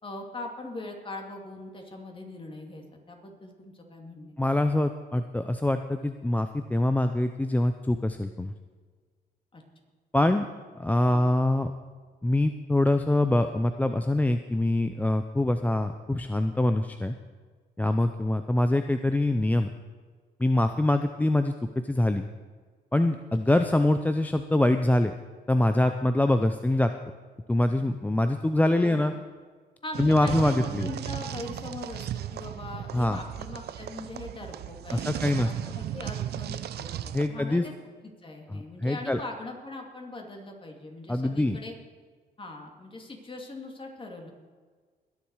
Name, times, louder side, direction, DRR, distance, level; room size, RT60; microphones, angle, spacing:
voice 1, 0.0-4.4 9.5-9.6 10.2-10.3 11.1-11.2 17.8-18.0 25.8-25.9 28.7-29.2 29.8-37.7 38.0-41.7 42.4-44.3, left 2 dB, 30° left, 2 dB, 2.7 m, -41 dB
voice 2, 4.4-8.5 10.1-10.5 10.7-11.7 12.2-17.2 17.8-19.7 20.4-22.3 22.9-25.1 25.5-26.9 27.5-29.1 30.0-30.9 32.9-33.2 34.9-35.5 37.1-37.7 38.5-39.2 41.1-41.6, left 1 dB, 10° left, 8 dB, 0.5 m, -24 dB
sound 1, 29.9-37.3, right 11 dB, 65° right, 0.6 m, -35 dB
21.0 x 7.1 x 4.8 m, 1.5 s
cardioid pair, 85°, 18 cm